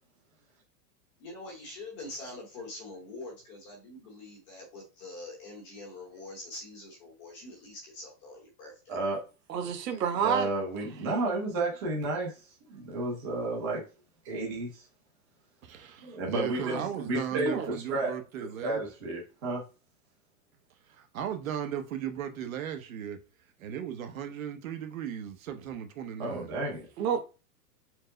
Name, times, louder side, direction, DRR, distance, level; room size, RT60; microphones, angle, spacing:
voice 1, 1.2-9.0, left 2 dB, 20° left, 0.9 m, -44 dB
voice 2, 8.9-9.2 9.9-12.3 12.7-13.8 14.2-14.8 16.0-16.8 17.0-17.6 17.9-18.2 18.6-19.6 26.2-26.9, right 2 dB, 15° right, 0.6 m, -32 dB
voice 3, 9.5-10.5 16.6-16.8 17.5-17.7 27.0-27.2, right 7 dB, 85° right, 1.3 m, -29 dB
voice 4, 15.6-18.8 20.9-23.2 23.6-26.5, right 9 dB, 55° right, 0.8 m, -36 dB
4.6 x 2.0 x 3.8 m
supercardioid pair, 180°, 48 cm